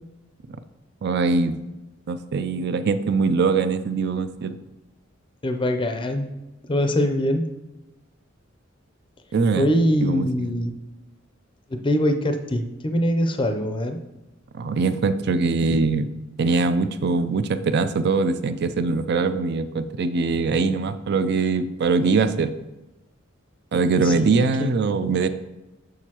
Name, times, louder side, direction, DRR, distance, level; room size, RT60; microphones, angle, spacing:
voice 1, 1.0-1.6 2.1-4.6 9.3-9.7 10.0-10.5 14.5-16.1 16.4-22.5 23.7-25.3, right 4 dB, 55° right, 11 dB, 0.4 m, -22 dB
voice 2, 5.4-6.3 6.7-7.4 9.6-10.7 11.7-14.0 24.0-24.3 24.6-24.7, equal, 25° left, 5 dB, 0.5 m, -23 dB
6.7 x 6.4 x 2.9 m, 1.0 s
head